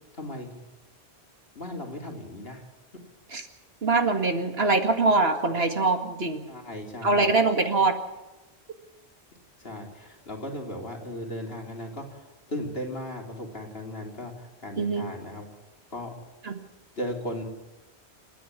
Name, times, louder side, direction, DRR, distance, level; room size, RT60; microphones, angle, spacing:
voice 1, 0.1-0.5 1.6-2.6 6.5-7.3 9.6-15.5 15.9-16.1 17.0-17.4, left 1 dB, 60° left, 1 dB, 3.6 m, -36 dB
voice 2, 3.8-6.4 7.0-8.0 14.8-15.1 16.4-16.6, right 3 dB, 65° right, 6 dB, 2.2 m, -23 dB
28.5 x 10.0 x 10.0 m, 1.0 s
omnidirectional pair, 1.1 m